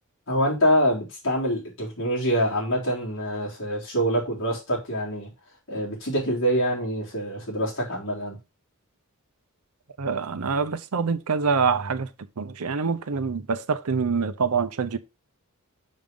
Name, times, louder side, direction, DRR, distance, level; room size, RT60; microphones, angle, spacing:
voice 1, 0.3-5.3 5.7-8.4, equal, 60° left, 3.5 m, -25 dB
voice 2, 10.0-15.0, right 5 dB, 85° right, 0.7 m, -25 dB
6.3 x 5.4 x 3.6 m
head